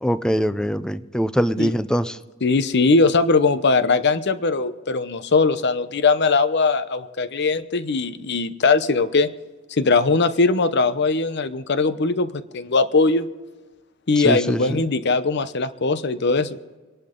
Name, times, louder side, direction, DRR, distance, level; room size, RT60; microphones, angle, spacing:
voice 1, 0.0-2.2 14.2-14.8, equal, 5° left, 13 dB, 0.5 m, -23 dB
voice 2, 2.4-9.3 9.7-13.3 14.1-16.6, left 3 dB, 55° left, 12 dB, 0.8 m, -20 dB
26.5 x 11.5 x 3.8 m, 1.3 s
head